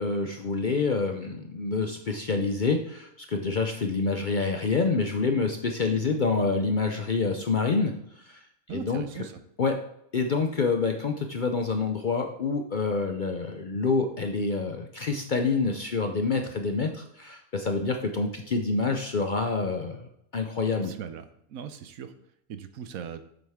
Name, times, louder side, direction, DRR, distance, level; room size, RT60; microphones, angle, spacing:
voice 1, 0.0-8.4 8.7-9.0 9.6-9.8 10.1-20.0 20.3-21.0, left 4 dB, 50° left, 4 dB, 0.6 m, -27 dB
voice 2, 8.7-9.4 20.8-22.1 22.5-23.2, right 8 dB, 80° right, 10 dB, 1.1 m, -39 dB
7.7 x 7.5 x 3.6 m, 0.73 s
omnidirectional pair, 1.5 m